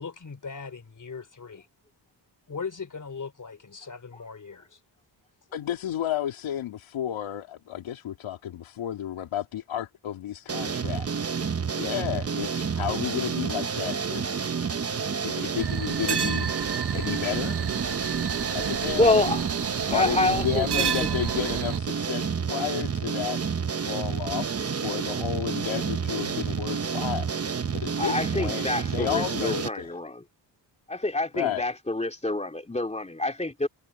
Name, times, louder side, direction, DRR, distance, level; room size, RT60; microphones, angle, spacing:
voice 1, 0.0-1.7 2.5-4.8, left 5 dB, 40° left, 3.5 m, -39 dB
voice 2, 5.5-14.2 15.2-16.5 16.9-17.6 18.5-19.3 19.9-23.4 23.8-27.3 27.7-30.0 31.3-31.7, left 11 dB, 90° left, 2.8 m, -32 dB
sound 1, 10.5-29.7, right 6 dB, 30° right, 1.0 m, -29 dB
sound 2, 15.6-21.8, right 8 dB, 60° right, 1.4 m, -32 dB
voice 3, 19.0-19.4 19.9-21.1 28.0-30.2 30.9-33.7, left 2 dB, 15° left, 2.6 m, -27 dB
cardioid pair, 65°, 46 cm